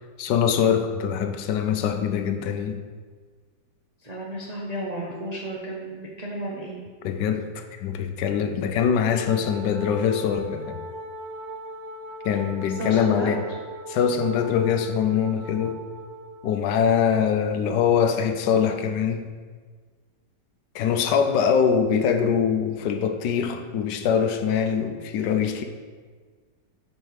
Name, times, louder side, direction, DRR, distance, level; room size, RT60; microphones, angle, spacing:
voice 1, 0.2-2.8 7.0-10.8 12.2-13.4 13.9-15.8 16.4-19.2 20.7-25.6, left 7 dB, 80° left, 7 dB, 1.2 m, -23 dB
voice 2, 4.0-6.8 12.7-13.3 14.6-14.8, equal, 40° right, -5 dB, 0.5 m, -33 dB
Wind instrument woodwind instrument, 9.0-17.0, equal, 65° right, 1.4 m, -40 dB
5.4 x 5.2 x 4.7 m, 1.5 s
omnidirectional pair, 1.9 m